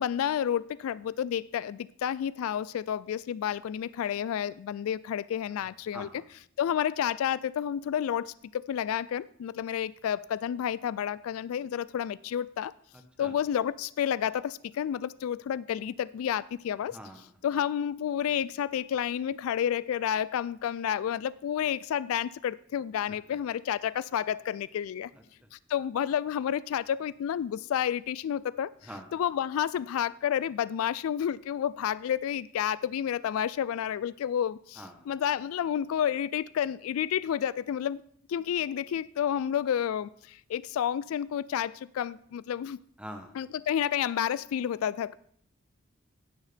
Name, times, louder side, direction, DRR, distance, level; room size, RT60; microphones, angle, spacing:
voice 1, 0.0-6.1 6.6-12.7 13.2-17.0 17.4-25.1 25.5-28.7 29.1-38.0 38.3-42.8 43.4-45.1, left 9 dB, 80° left, 0.3 m, -30 dB
voice 2, 5.6-6.3 13.2-13.3 16.9-17.2 25.1-25.5 28.8-29.2 34.8-35.1 43.0-43.3, equal, 5° right, 1.1 m, -45 dB
16.0 x 6.5 x 3.4 m
head